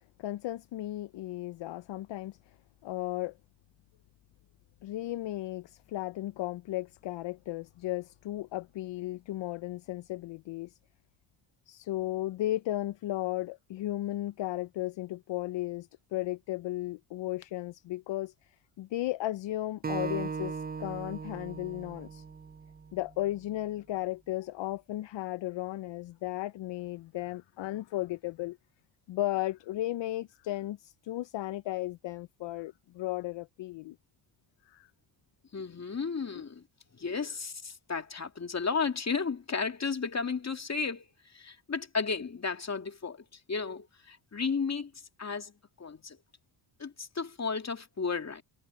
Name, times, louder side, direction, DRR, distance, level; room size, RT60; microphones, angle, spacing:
voice 1, 0.2-2.5 2.8-3.3 4.8-10.8 11.7-22.2 22.9-28.6 29.1-34.0 34.7-34.9, left 16 dB, 65° left, 0.7 m, -35 dB
Acoustic guitar, 19.8-23.1, right 5 dB, 20° right, 0.7 m, -38 dB
voice 2, 35.5-36.6 37.0-41.1 41.3-44.9 45.2-45.5 45.8-46.2 46.8-48.4, left 5 dB, 35° left, 2.6 m, -33 dB
cardioid pair, 70°, 48 cm